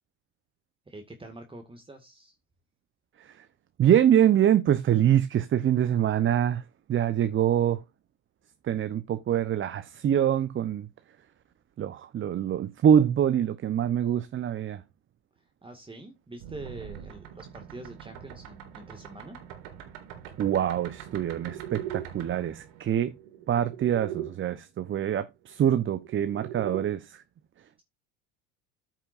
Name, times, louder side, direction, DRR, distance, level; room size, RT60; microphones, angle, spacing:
voice 1, 0.9-2.4 15.6-19.4, right 2 dB, 15° right, 2.0 m, -45 dB
voice 2, 3.8-6.6 6.9-7.8 8.6-10.9 11.8-14.8 20.4-23.1 23.5-27.2, right 10 dB, 35° right, 0.9 m, -25 dB
sound 1, 16.4-24.3 25.6-26.8, right 11 dB, 65° right, 3.4 m, -41 dB
14.0 x 6.0 x 2.6 m
hypercardioid pair, 75°, 37 cm